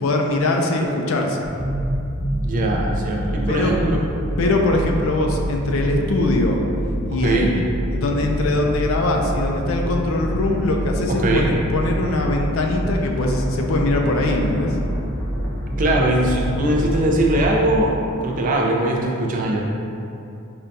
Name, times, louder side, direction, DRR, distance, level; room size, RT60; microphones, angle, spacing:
voice 1, 0.0-1.5 3.5-3.7 4.4-6.6 7.1-7.6 7.9-14.8, left 2 dB, 65° left, 2 dB, 0.4 m, -22 dB
sound 1, 1.4-17.8, equal, 15° left, 0.6 m, -26 dB
voice 2, 2.4-4.0 7.2-7.5 11.1-11.5 15.8-17.9 18.2-19.7, right 1 dB, 40° right, -1 dB, 0.4 m, -20 dB
5.1 x 2.2 x 2.6 m, 2.7 s
head